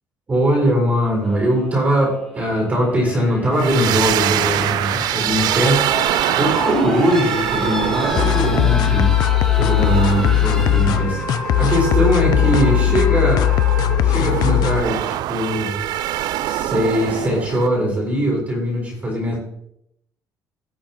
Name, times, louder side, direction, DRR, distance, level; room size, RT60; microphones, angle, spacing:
voice 1, 0.3-9.1 9.6-11.2 11.6-13.6 14.0-15.8 16.4-19.4, equal, 25° right, -2 dB, 4.1 m, -20 dB
sound 1, 1.2-15.2 16.4-16.5, left 2 dB, 5° left, 1.9 m, -31 dB
sound 2, 3.5-17.7, right 13 dB, 70° right, 0.4 m, -24 dB
sound 3, 8.2-14.8, left 15 dB, 65° left, 0.4 m, -18 dB
18.5 x 6.4 x 2.9 m, 0.77 s
cardioid pair, 170°, 7 cm